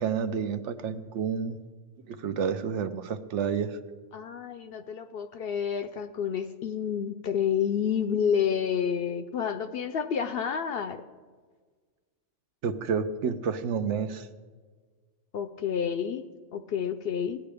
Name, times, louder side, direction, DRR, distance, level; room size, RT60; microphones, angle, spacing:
voice 1, 0.0-1.6 2.1-3.8 12.6-14.3, right 6 dB, 75° right, 10 dB, 0.9 m, -30 dB
voice 2, 4.1-11.0 15.3-16.2 16.5-17.4, left 7 dB, 60° left, 10 dB, 0.7 m, -29 dB
17.0 x 10.0 x 3.4 m, 1.5 s
omnidirectional pair, 1.3 m